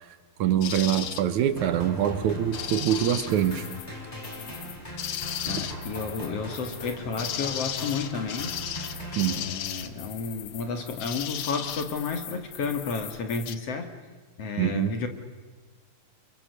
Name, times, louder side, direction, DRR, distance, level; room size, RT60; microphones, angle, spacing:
voice 1, 0.4-3.7 9.2-9.4 14.6-14.9, right 10 dB, 70° right, 11 dB, 2.1 m, -24 dB
sound 1, 0.6-13.6, left 10 dB, 70° left, 1.4 m, -36 dB
sound 2, 1.6-9.9, equal, 10° left, 4.5 m, -39 dB
voice 2, 5.4-8.5 9.3-13.9 14.4-15.1, left 5 dB, 50° left, 7 dB, 2.5 m, -32 dB
29.5 x 23.0 x 6.7 m, 1.4 s
omnidirectional pair, 3.9 m